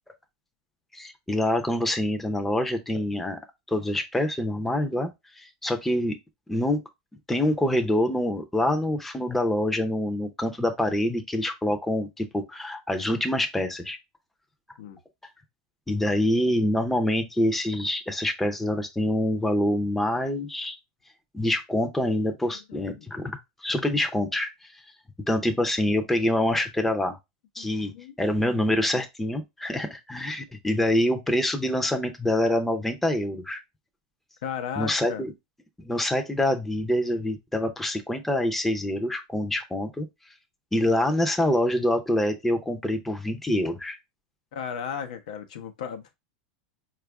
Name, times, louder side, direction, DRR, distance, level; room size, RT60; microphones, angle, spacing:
voice 1, 0.9-3.4 3.7-5.1 5.4-6.2 6.5-6.8 7.3-14.0 15.9-20.8 21.3-24.5 25.3-27.2 27.6-27.9 28.2-33.6 34.8-35.3 35.8-40.1 40.7-44.0, left 1 dB, 5° left, 0.6 m, -26 dB
voice 2, 27.6-28.4 34.4-35.2 44.5-46.2, left 7 dB, 80° left, 0.7 m, -35 dB
4.4 x 2.4 x 3.4 m
supercardioid pair, 125°, 4 cm